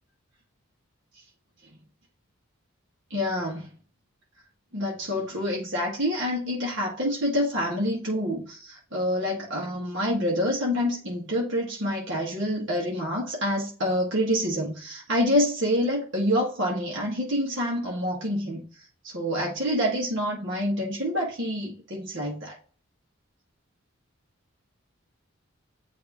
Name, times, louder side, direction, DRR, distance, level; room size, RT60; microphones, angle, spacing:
voice 1, 3.1-3.7 4.7-18.6 19.0-22.6, equal, 60° right, 1.8 m, -27 dB
9.5 x 3.3 x 3.0 m
head